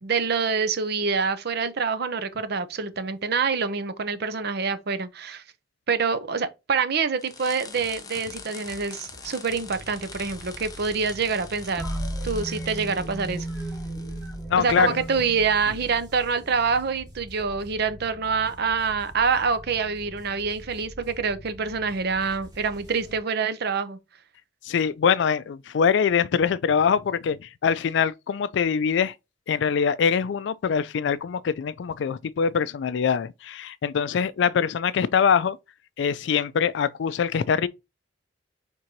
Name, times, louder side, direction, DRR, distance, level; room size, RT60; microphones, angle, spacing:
voice 1, 0.0-5.4 5.9-11.9 12.2-13.5 14.6-24.0, right 5 dB, 60° right, 0.6 m, -26 dB
sound 1, 7.2-14.4, left 4 dB, 20° left, 0.8 m, -44 dB
sound 2, 7.7-23.2, equal, 20° right, 2.6 m, -46 dB
sound 3, 11.8-16.5, right 1 dB, ahead, 2.7 m, -34 dB
voice 2, 14.5-15.0 24.6-29.1 29.5-35.6 36.0-37.7, left 6 dB, 70° left, 0.4 m, -23 dB
4.5 x 3.7 x 2.6 m
head